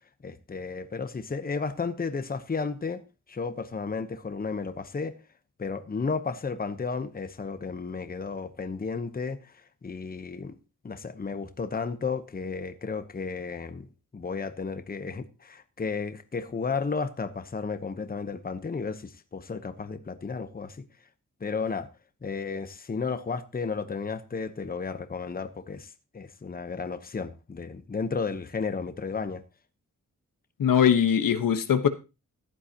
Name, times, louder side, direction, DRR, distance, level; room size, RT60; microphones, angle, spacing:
voice 1, 0.2-3.0 3.3-5.2 5.6-9.5 9.8-10.6 10.8-13.9 14.1-20.8 21.4-21.9 22.2-29.4, left 4 dB, 30° left, 1.0 m, -33 dB
voice 2, 30.6-31.9, left 8 dB, 85° left, 1.2 m, -21 dB
15.0 x 11.0 x 2.9 m
wide cardioid pair, 130°, 32 cm